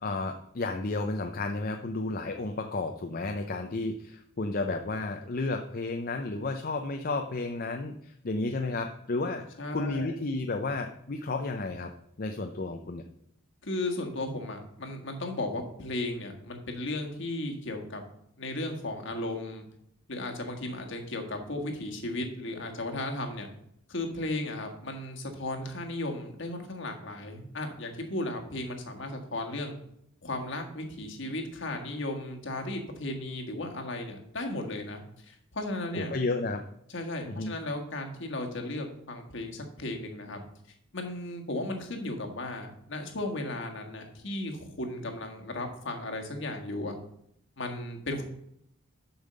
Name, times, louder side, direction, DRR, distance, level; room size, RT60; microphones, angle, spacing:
voice 1, 0.0-9.4 9.7-11.9 12.2-13.0 35.9-36.6 37.3-37.5, left 3 dB, 45° left, 5 dB, 0.6 m, -32 dB
voice 2, 9.6-10.2 13.6-18.0 18.4-19.6 20.1-23.5 23.9-29.8 30.2-36.1 36.9-40.4 40.9-46.9 47.6-48.2, left 2 dB, 60° left, 3 dB, 1.6 m, -35 dB
7.1 x 5.6 x 6.6 m, 0.74 s
head